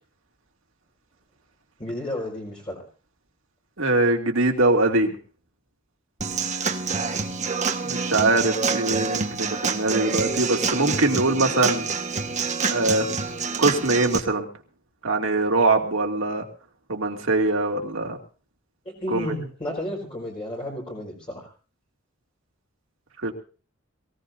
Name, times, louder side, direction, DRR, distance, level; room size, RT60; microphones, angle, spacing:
voice 1, 1.8-2.8 18.8-21.5, left 1 dB, 30° left, -2 dB, 4.7 m, -32 dB
voice 2, 3.8-5.2 7.8-11.9 12.7-13.1 13.6-14.5 15.0-16.4 16.9-18.2 19.1-19.3 23.2-23.3, right 2 dB, 70° right, 2 dB, 2.5 m, -22 dB
Human voice / Acoustic guitar / Drum, 6.2-14.2, right 5 dB, 35° right, 1.5 m, -27 dB
23.5 x 17.0 x 2.7 m, 0.38 s
head